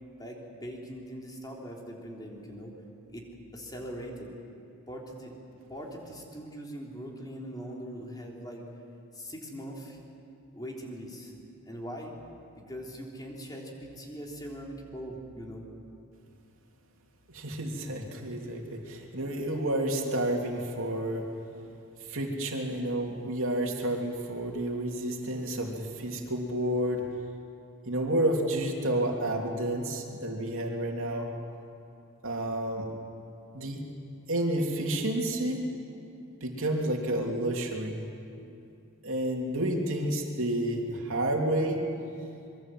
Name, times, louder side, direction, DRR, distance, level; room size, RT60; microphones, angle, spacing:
voice 1, 0.2-2.7 3.1-3.2 3.5-4.3 4.9-5.3 5.7-8.6 9.1-10.0 10.5-11.3 11.7-12.1 12.5-15.7, equal, 20° left, -1 dB, 3.6 m, -41 dB
voice 2, 17.3-21.2 22.1-27.0 27.8-31.3 32.2-32.9 33.5-33.8 34.3-35.6 36.4-38.0 39.0-41.8, right 1 dB, 60° right, 1 dB, 3.3 m, -30 dB
26.0 x 23.0 x 7.8 m, 2.6 s
head